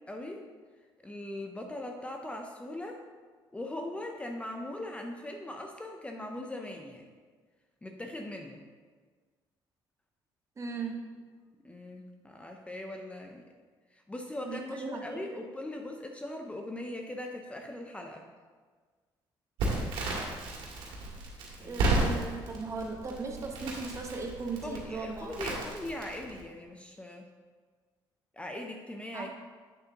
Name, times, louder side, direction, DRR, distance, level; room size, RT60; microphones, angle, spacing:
voice 1, 0.1-0.4 1.0-3.0 3.5-7.1 7.8-8.6 11.6-13.4 13.9-18.3 21.6-21.8 24.6-27.3 28.3-29.3, left 1 dB, 15° left, 3 dB, 0.6 m, -40 dB
voice 2, 10.6-11.3 14.4-15.4 21.6-25.4 29.1-29.3, right 4 dB, 35° right, 2 dB, 1.1 m, -38 dB
Crackle, 19.6-26.4, right 2 dB, 85° right, 2.0 m, -33 dB
8.2 x 7.3 x 2.9 m, 1.5 s
cardioid pair, 100°, 9 cm